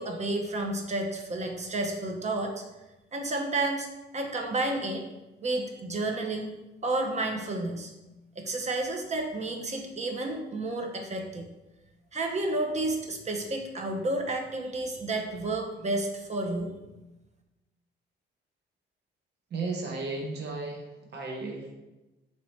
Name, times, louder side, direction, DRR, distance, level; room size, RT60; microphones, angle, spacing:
voice 1, 0.0-2.6 3.1-3.9 4.1-5.1 5.4-6.6 6.8-7.9 8.4-11.5 12.1-16.7, right 2 dB, 35° right, 3 dB, 0.6 m, -31 dB
voice 2, 19.5-21.7, right 3 dB, 60° right, 0 dB, 1.0 m, -34 dB
3.1 x 2.9 x 4.1 m, 1.0 s
cardioid pair, 90°, 20 cm